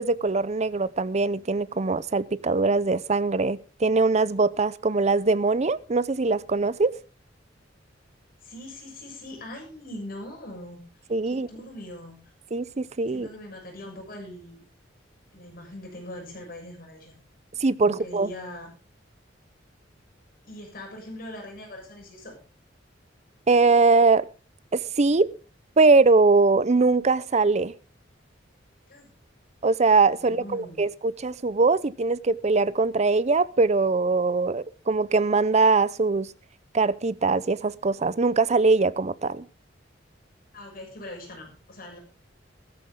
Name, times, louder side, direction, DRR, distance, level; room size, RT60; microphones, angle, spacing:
voice 1, 0.0-6.9 11.1-11.5 12.5-13.3 17.6-18.3 23.5-24.3 24.7-25.3 25.8-27.7 29.6-36.3 36.7-39.4, right 3 dB, 35° right, 0.6 m, -22 dB
voice 2, 8.4-10.8 11.3-12.2 13.1-14.7 15.3-17.1 17.8-18.7 20.4-22.4 28.9-29.1 30.2-30.8 40.5-42.0, left 1 dB, 50° left, 6.9 m, -41 dB
15.0 x 13.5 x 3.7 m
head